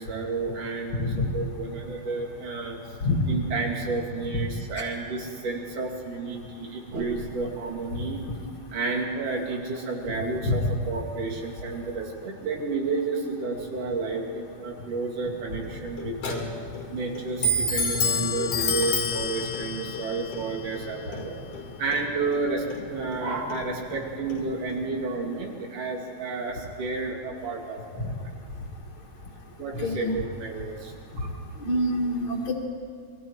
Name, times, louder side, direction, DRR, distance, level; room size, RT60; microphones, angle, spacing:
voice 1, 0.0-2.8 3.3-8.2 8.7-16.5 16.9-21.4 21.8-28.3 29.6-31.3, right 3 dB, 85° right, 0 dB, 4.2 m, -31 dB
Clock, 15.6-24.9, left 2 dB, 90° left, 3.9 m, -31 dB
voice 2, 29.8-30.1 31.6-32.5, left 1 dB, 40° left, -4 dB, 2.6 m, -25 dB
29.0 x 22.0 x 4.7 m, 2.4 s
omnidirectional pair, 3.5 m